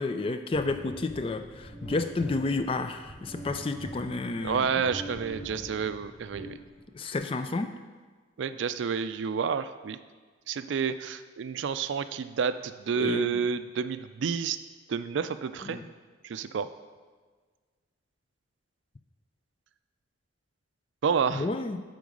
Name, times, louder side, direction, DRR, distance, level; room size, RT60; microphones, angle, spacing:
voice 1, 0.0-4.8 6.9-7.7 13.0-13.4 15.7-15.9 21.3-21.8, left 3 dB, 30° left, 9 dB, 0.3 m, -31 dB
sound 1, 0.5-7.1, right 1 dB, 80° left, 2.0 m, -43 dB
voice 2, 4.4-6.6 8.4-10.0 10.5-14.6 14.9-15.8 16.2-16.7 21.0-21.5, right 6 dB, 75° right, 12 dB, 0.4 m, -29 dB
9.7 x 3.9 x 5.3 m, 1.4 s
head